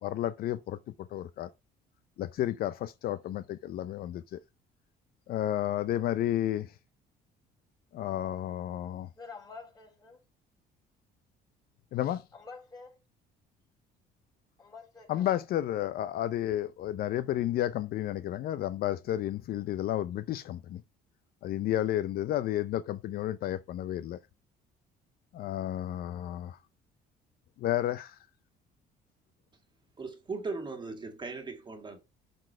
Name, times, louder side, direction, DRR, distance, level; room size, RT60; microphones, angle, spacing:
voice 1, 0.0-1.5 2.2-4.4 5.3-6.7 7.9-9.1 11.9-12.2 15.1-20.8 21.4-24.2 25.3-26.6 27.6-28.2, left 12 dB, 65° left, 0.5 m, -32 dB
voice 2, 9.2-10.2 12.3-13.0 14.6-15.3, left 4 dB, 20° left, 4.4 m, -48 dB
voice 3, 30.0-32.0, right 4 dB, 25° right, 1.8 m, -38 dB
11.0 x 4.2 x 4.3 m
cardioid pair, 110°, 17 cm